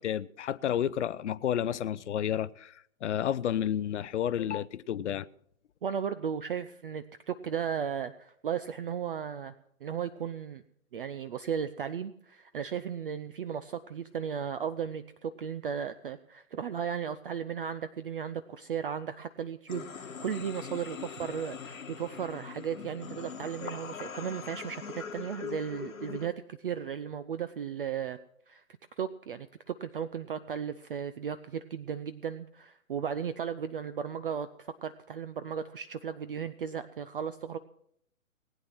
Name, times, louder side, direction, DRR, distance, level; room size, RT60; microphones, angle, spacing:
voice 1, 0.0-5.3, left 10 dB, 55° left, 0.6 m, -31 dB
voice 2, 5.8-9.5 9.8-10.6 10.9-28.2 28.5-28.6 29.0-37.6, right 8 dB, 40° right, 0.6 m, -35 dB
sound 1, 19.7-26.3, left 6 dB, 75° left, 1.4 m, -42 dB
19.0 x 9.0 x 5.9 m
figure-of-eight pair, 135°, 41 cm